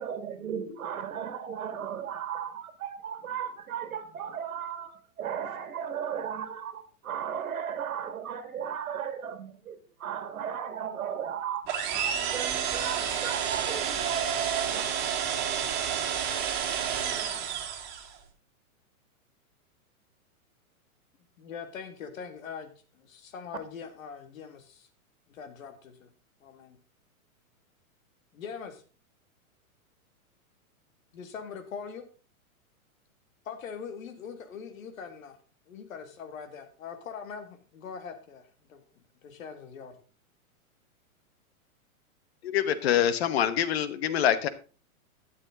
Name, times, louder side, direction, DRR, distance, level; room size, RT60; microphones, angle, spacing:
voice 1, 0.0-14.8, right 8 dB, 75° right, 2.2 m, -35 dB
sound 1, 11.7-18.2, right 8 dB, 25° right, 2.0 m, -30 dB
voice 2, 21.4-24.9 25.3-26.1 26.4-26.8 28.3-28.8 31.1-32.0 33.5-35.4 35.7-38.8 39.2-40.0, left 6 dB, 65° left, 2.1 m, -42 dB
voice 3, 42.4-44.5, left 10 dB, 45° left, 1.1 m, -25 dB
12.5 x 9.4 x 3.7 m
hypercardioid pair, 165°, 43 cm